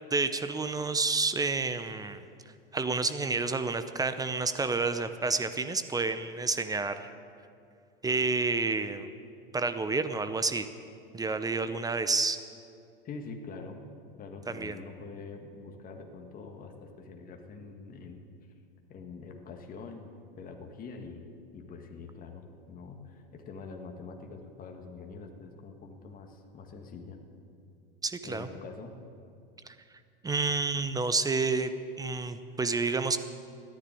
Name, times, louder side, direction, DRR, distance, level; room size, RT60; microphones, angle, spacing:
voice 1, 0.1-2.2 2.7-7.1 8.0-9.1 9.5-10.7 11.1-12.4 14.5-14.8 28.0-28.5 30.2-33.2, right 3 dB, 15° right, 10 dB, 0.8 m, -29 dB
voice 2, 13.0-13.8 14.2-18.3 18.9-20.1 20.4-27.2 28.2-28.9, left 4 dB, 30° left, 3 dB, 1.8 m, -45 dB
14.5 x 10.5 x 9.2 m, 2.4 s
hypercardioid pair, 105°, 29 cm